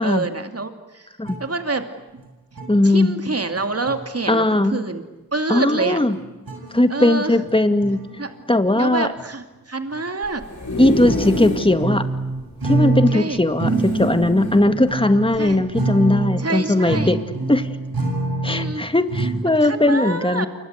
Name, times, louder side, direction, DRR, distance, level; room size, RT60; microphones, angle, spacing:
voice 1, 0.0-1.1 1.4-1.9 2.8-5.0 5.3-6.0 6.9-7.4 8.2-8.3 8.8-10.4 13.1-13.4 15.4-15.6 16.4-17.1 18.4-18.8 19.5-20.5, right 3 dB, 45° right, 7 dB, 2.6 m, -26 dB
sound 1, 1.3-1.4 2.2-2.3 2.5-2.7 3.6-3.7 3.9-4.1 6.2-7.0 7.4-8.1 9.2-9.3 9.9-10.0 10.7-13.3 13.5-19.4, right 2 dB, 85° right, 7.6 m, -26 dB
voice 2, 2.7-3.1 4.3-4.8 5.5-6.2 6.7-8.0 8.5-9.1 10.8-12.0 12.6-17.2 17.5-17.7 18.4-20.5, left 1 dB, 15° left, 9 dB, 2.2 m, -18 dB
sound 2, 10.2-11.8 12.2-12.3 12.5-12.6 13.7-14.7 15.3-15.5, left 1 dB, 55° left, 8.0 m, -26 dB
28.5 x 24.5 x 8.2 m, 1.1 s
wide cardioid pair, 65°, 35 cm